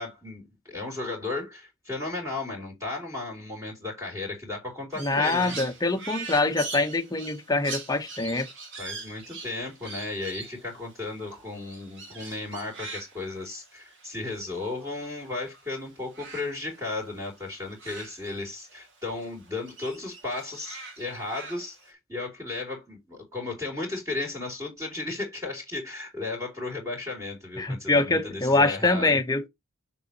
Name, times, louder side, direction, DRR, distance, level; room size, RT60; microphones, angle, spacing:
voice 1, 0.0-5.6 8.8-29.1, left 3 dB, 15° right, 2.9 m, -35 dB
Crow, 4.9-15.6 15.9-18.9 19.2-21.9, right 3 dB, 55° right, 2.3 m, -42 dB
voice 2, 5.0-8.5 27.6-29.5, left 2 dB, 15° left, 0.8 m, -24 dB
6.8 x 6.2 x 2.8 m
head